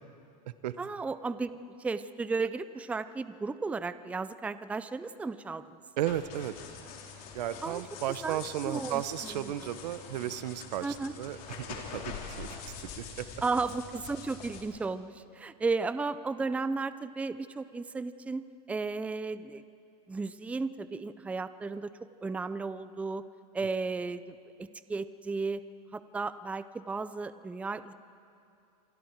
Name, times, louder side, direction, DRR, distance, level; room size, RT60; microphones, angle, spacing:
voice 1, 0.8-1.5 1.8-5.8 7.6-7.8 8.2-9.5 10.8-11.1 13.4-18.4 18.7-19.6 20.1-21.9 22.2-23.2 23.5-25.6 25.9-27.9, right 4 dB, 5° right, 13 dB, 0.5 m, -34 dB
sound 1, 6.0-14.6, left 6 dB, 45° left, 3.6 m, -44 dB
voice 2, 6.0-6.5 7.3-12.6 13.0-13.3, right 11 dB, 85° right, 14 dB, 1.0 m, -34 dB
28.0 x 24.5 x 4.6 m, 2.5 s
supercardioid pair, 130°, 21 cm